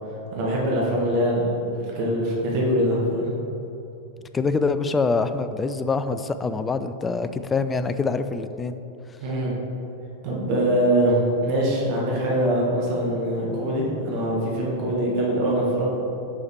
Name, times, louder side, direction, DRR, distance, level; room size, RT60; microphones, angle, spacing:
voice 1, 0.3-1.5 1.8-3.3 9.2-9.5 10.2-15.9, right 1 dB, 45° right, -4 dB, 1.5 m, -23 dB
voice 2, 4.3-8.8, left 4 dB, 15° left, 10 dB, 0.3 m, -25 dB
6.1 x 5.7 x 4.4 m, 3.0 s
figure-of-eight pair, 90°, 0 cm